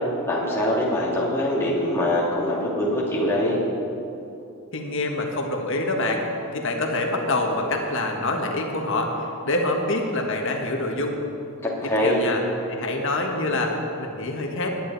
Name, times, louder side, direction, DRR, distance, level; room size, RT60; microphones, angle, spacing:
voice 1, 0.3-3.6 11.6-12.2, left 1 dB, 10° left, -6 dB, 2.5 m, -23 dB
voice 2, 4.7-6.2 6.5-11.2 11.8-12.4 12.7-14.7, left 2 dB, 60° left, 2 dB, 1.6 m, -26 dB
20.0 x 10.0 x 4.1 m, 2.7 s
head